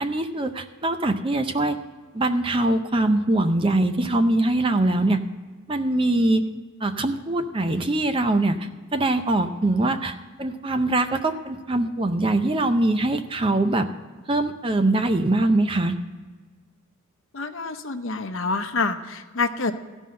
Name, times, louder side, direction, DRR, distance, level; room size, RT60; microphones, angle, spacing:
voice 1, 0.0-1.8 2.1-5.2 5.7-6.4 6.8-13.9 14.3-16.0, right 2 dB, 25° right, 8 dB, 0.5 m, -22 dB
voice 2, 17.3-19.7, left 3 dB, 60° left, 8 dB, 0.8 m, -27 dB
14.5 x 5.4 x 7.4 m, 1.4 s
head